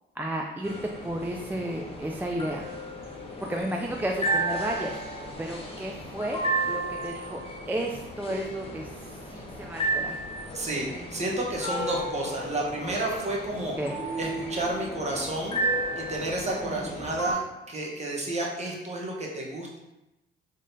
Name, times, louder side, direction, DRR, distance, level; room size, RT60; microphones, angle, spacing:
voice 1, 0.2-0.7 1.0-2.6 3.4-4.9 5.4-7.4 7.7-10.2 13.8-14.0 16.6-16.9, right 1 dB, 10° right, 0 dB, 0.3 m, -33 dB
sound 1, 0.6-17.3, right 1 dB, 30° left, 0.8 m, -33 dB
voice 2, 10.5-13.8 14.2-15.6 16.0-19.8, right 2 dB, 35° right, -2 dB, 1.0 m, -31 dB
3.7 x 3.6 x 2.7 m, 0.96 s
cardioid pair, 90°, 20 cm